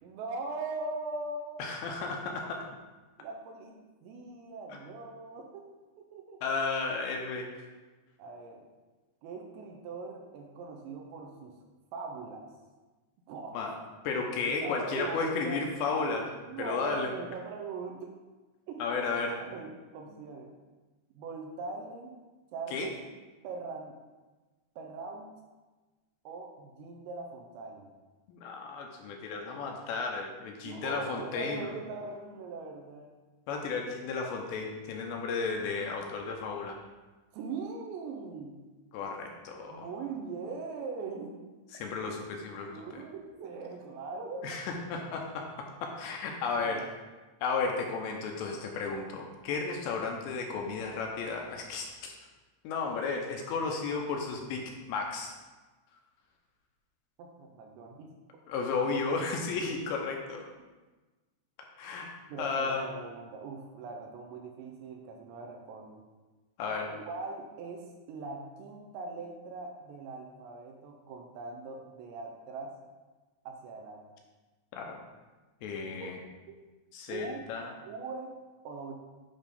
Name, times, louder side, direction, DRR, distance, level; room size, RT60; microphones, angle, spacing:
voice 1, 0.0-1.6 2.0-2.1 3.2-5.7 6.0-6.5 8.2-8.6 9.2-11.5 11.9-12.5 13.3-13.6 14.3-15.6 16.5-18.1 18.7-19.0 19.4-20.5 21.1-22.2 22.5-22.9 23.4-24.0 24.8-25.3 26.3-27.9 30.6-33.1 37.3-38.5 39.7-41.3 42.7-44.6 46.6-46.9 57.2-58.1 62.3-66.0 66.9-72.7 73.5-74.0 75.9-76.2 76.5-76.6 77.1-77.4 77.9-78.3 78.6-78.9, right 4 dB, 80° right, 2 dB, 2.8 m, -41 dB
voice 2, 1.6-2.7 4.7-4.8 6.4-7.5 13.5-13.7 14.0-16.3 16.6-17.1 18.8-19.4 22.7-22.9 28.3-31.8 33.5-36.8 38.9-39.9 41.7-42.8 44.4-46.8 47.4-52.2 52.6-55.4 58.5-60.5 61.8-62.1 62.4-62.8 66.6-66.9 74.7-75.0 75.6-76.2 76.9-77.7, left 4 dB, 80° left, 1 dB, 2.8 m, -33 dB
9.6 x 3.6 x 5.3 m, 1.2 s
omnidirectional pair, 5.4 m